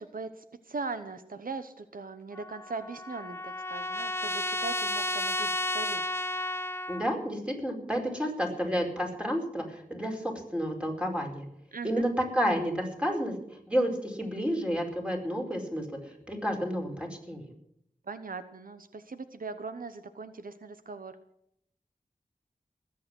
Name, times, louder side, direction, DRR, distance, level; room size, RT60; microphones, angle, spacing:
voice 1, 0.0-6.0 11.7-12.0 18.1-21.1, right 4 dB, 80° right, 11 dB, 0.9 m, -40 dB
Trumpet, 2.3-7.1, left 1 dB, 15° left, 0.7 m, -32 dB
voice 2, 6.9-11.4 11.8-13.3 13.7-17.5, equal, 10° right, 1 dB, 4.7 m, -30 dB
20.0 x 8.5 x 6.2 m, 0.74 s
wide cardioid pair, 50°, 14 cm